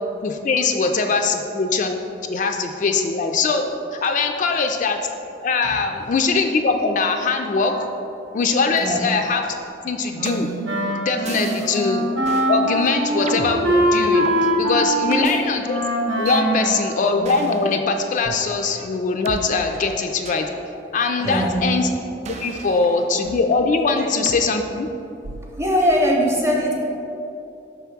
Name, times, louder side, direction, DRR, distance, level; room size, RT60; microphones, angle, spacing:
voice 1, 0.2-2.0 2.3-3.7 3.9-5.0 5.4-7.9 8.3-9.4 9.8-10.5 10.9-12.1 12.5-15.8 16.2-20.5 20.9-21.9 22.3-24.9, left 4 dB, 45° left, 4 dB, 0.3 m, -21 dB
Wind instrument woodwind instrument, 10.1-17.6, right 1 dB, 90° right, 0.9 m, -23 dB
sound 1, 10.3-10.7 11.3-11.8 12.2-12.5 13.3-14.4 15.2-15.4 16.3-16.4 17.2-17.7 18.3-18.4 19.3-19.4 20.3-20.5 21.3-21.8 22.3-23.5 24.3-24.4 25.2-25.6, right 4 dB, 40° right, 0.3 m, -34 dB
voice 2, 21.2-21.6 22.6-22.7 25.6-26.8, equal, 15° right, -1 dB, 0.8 m, -21 dB
5.5 x 3.5 x 5.8 m, 2.8 s
head